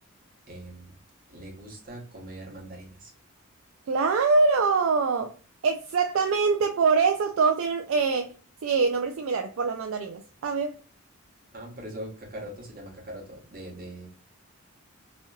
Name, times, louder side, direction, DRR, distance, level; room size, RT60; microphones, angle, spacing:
voice 1, 0.5-1.0 1.3-3.1 11.5-14.1, right 1 dB, 45° right, 1.2 m, -41 dB
voice 2, 3.9-5.3 5.6-8.3 8.6-10.7, right 4 dB, 65° right, 0.4 m, -24 dB
3.0 x 2.9 x 2.2 m
head